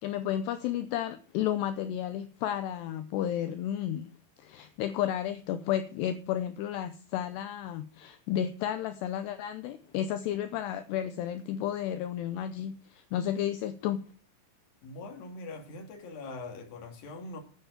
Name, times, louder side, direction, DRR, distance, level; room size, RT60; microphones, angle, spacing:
voice 1, 0.0-4.1 4.4-14.0, left 11 dB, 80° left, 2.5 m, -32 dB
voice 2, 14.8-17.4, left 3 dB, 55° left, 3.7 m, -42 dB
9.9 x 9.1 x 6.7 m
omnidirectional pair, 5.4 m